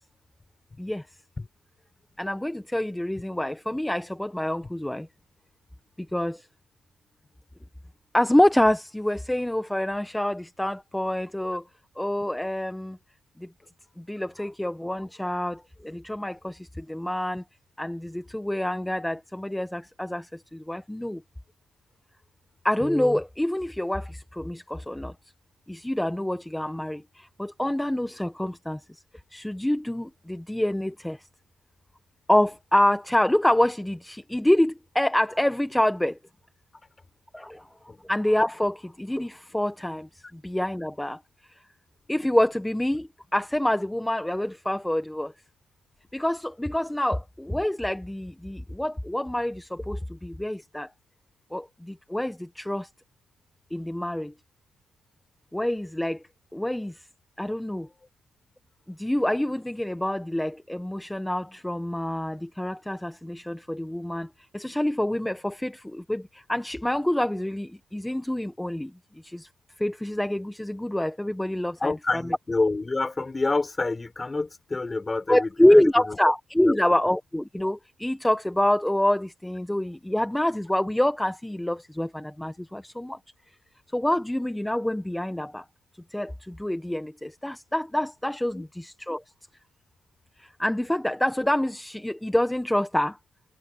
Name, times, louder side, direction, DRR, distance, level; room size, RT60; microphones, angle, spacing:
voice 1, 2.2-5.1 6.1-6.5 8.1-11.6 12.0-13.0 13.4-13.5 14.0-17.4 17.8-21.2 22.6-25.1 25.7-28.8 29.3-31.3 32.3-36.2 37.3-37.7 38.0-41.2 41.5-41.6 42.1-45.3 46.1-50.9 51.5-52.9 53.7-54.3 55.5-56.2 56.5-57.1 57.4-57.9 58.9-68.9 69.2-69.5 69.8-72.2 75.3-83.2 83.9-85.6 86.1-89.2 90.4-93.2, left 1 dB, 5° left, 1.1 m, -26 dB
voice 2, 71.8-76.2 76.6-76.8 88.5-88.7, left 3 dB, 20° left, 5.1 m, -28 dB
cardioid pair, 90°, 0 cm